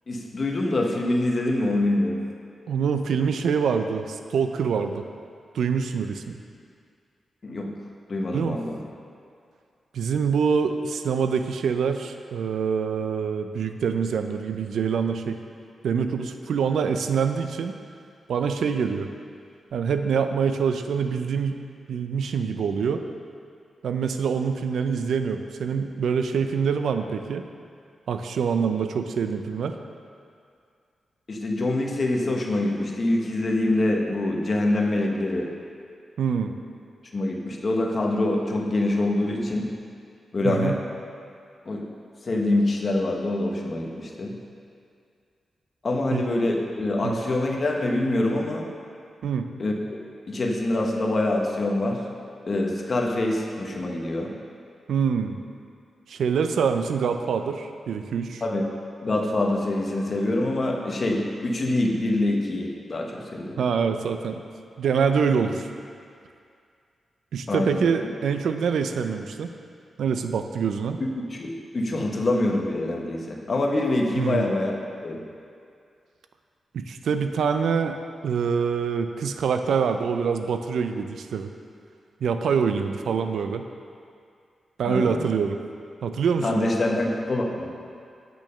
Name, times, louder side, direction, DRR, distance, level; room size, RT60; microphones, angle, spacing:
voice 1, 0.1-2.2 7.4-7.7 8.1-8.8 31.3-35.5 37.1-39.7 40.3-40.8 41.6-41.9 42.3-44.4 45.8-48.7 49.6-49.7 50.3-52.0 52.5-54.3 58.4-58.6 59.0-63.6 67.5-67.9 71.0-74.8 75.0-75.2 84.8-85.2 86.4-87.7, left 2 dB, 40° left, 0 dB, 1.1 m, -25 dB
voice 2, 2.7-5.0 5.5-6.4 8.3-8.6 9.9-15.4 15.8-17.7 18.3-19.1 19.7-21.6 21.9-23.0 23.8-27.4 28.1-29.8 36.2-36.5 40.4-40.8 46.1-46.2 47.0-47.2 49.2-49.5 54.9-55.4 56.1-58.4 63.6-64.4 64.8-65.7 67.3-69.5 70.0-71.0 74.2-74.5 76.7-78.0 78.2-81.5 82.2-83.6 84.8-85.6 86.0-86.7, right 6 dB, 90° right, 7 dB, 0.5 m, -25 dB
8.6 x 6.2 x 5.6 m, 2.3 s
wide cardioid pair, 115°, 0 cm